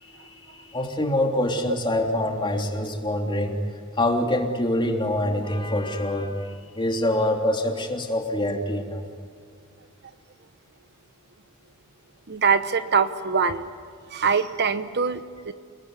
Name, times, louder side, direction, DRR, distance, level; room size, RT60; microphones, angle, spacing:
voice 1, 0.0-3.6 4.0-6.4 6.7-9.0, left 1 dB, 20° left, 2 dB, 3.3 m, -25 dB
voice 2, 12.3-13.7 14.1-15.5, right 5 dB, 50° right, 11 dB, 1.0 m, -23 dB
29.5 x 19.5 x 9.8 m, 2.2 s
head